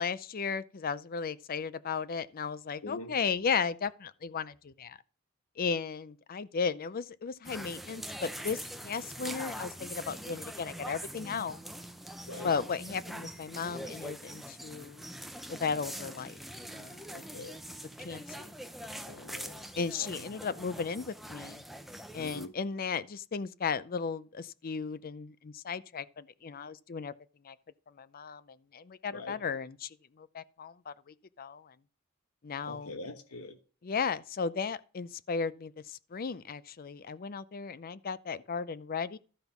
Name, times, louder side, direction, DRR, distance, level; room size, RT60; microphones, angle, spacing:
voice 1, 0.0-5.0 5.6-11.6 12.4-15.0 15.5-16.4 16.7-17.0 18.0-18.5 19.8-21.6 22.1-27.1 27.4-27.5 28.0-31.7 32.4-32.9 33.8-39.2, left 5 dB, 40° left, 0.5 m, -35 dB
voice 2, 2.8-3.1 12.3-12.5 17.1-17.6 19.1-19.7 20.0-20.3 22.2-22.5 29.1-29.4 32.7-33.6, left 2 dB, 85° left, 1.2 m, -44 dB
sound 1, 7.4-22.5, equal, ahead, 0.7 m, -43 dB
12.5 x 5.3 x 5.9 m
head